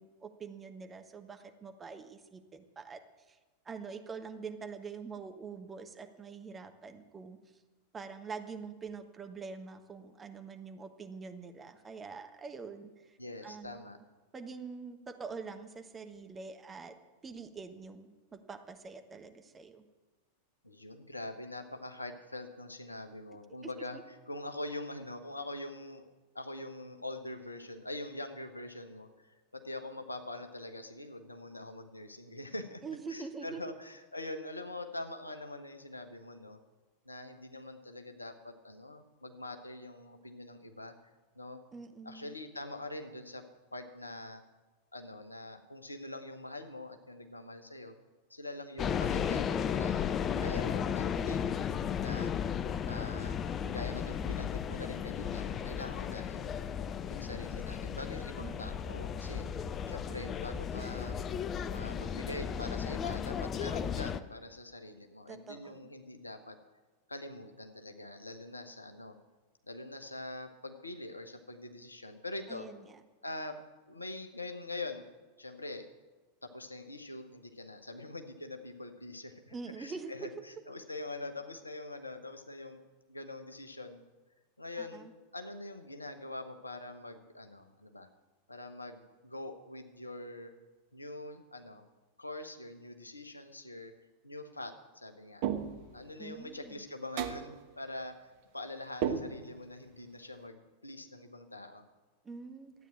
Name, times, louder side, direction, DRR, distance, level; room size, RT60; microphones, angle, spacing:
voice 1, 0.0-3.0 3.3-3.4 3.6-7.4 7.9-13.2 13.4-13.8 14.3-16.9 17.2-19.8 23.9-24.0 32.8-33.6 41.7-42.4 50.6-51.1 58.4-58.8 65.3-65.9 72.5-72.9 79.5-80.3 84.8-85.1 96.2-96.8 102.2-102.7, right 5 dB, 20° right, 7 dB, 1.2 m, -45 dB
voice 2, 13.2-14.0 20.6-24.0 24.3-26.0 26.3-32.8 33.1-36.6 37.0-40.9 41.3-41.6 42.0-43.4 43.7-44.4 44.9-47.9 48.3-51.7 52.0-52.3 52.8-53.4 53.7-56.5 57.1-59.4 59.9-61.2 61.7-66.6 67.1-69.1 69.7-72.7 73.2-73.6 73.9-75.1 75.4-75.9 76.4-82.8 83.1-84.1 84.6-88.1 88.5-90.5 90.9-91.8 92.2-93.9 94.2-95.4 95.9-101.8, left 2 dB, 80° left, 6 dB, 1.1 m, -44 dB
sound 1, 48.8-64.2, left 7 dB, 25° left, 0.6 m, -34 dB
sound 2, 95.4-96.0 97.2-97.6 99.0-99.7, right 8 dB, 50° right, 1.1 m, -34 dB
12.5 x 9.0 x 8.7 m, 1.2 s
figure-of-eight pair, 90°, 0 cm